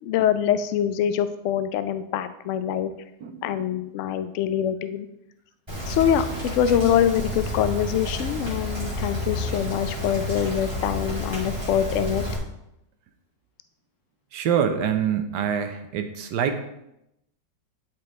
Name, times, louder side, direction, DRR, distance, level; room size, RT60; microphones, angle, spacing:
voice 1, 0.0-2.9 3.4-5.1 5.9-6.3 6.5-12.3, left 9 dB, 85° left, 11 dB, 0.6 m, -24 dB
voice 2, 3.2-3.6 14.3-16.6, right 8 dB, 75° right, 7 dB, 1.3 m, -25 dB
Rain, 5.7-12.4, left 1 dB, 15° right, 2.6 m, -30 dB
11.5 x 4.5 x 3.1 m, 0.83 s
omnidirectional pair, 1.9 m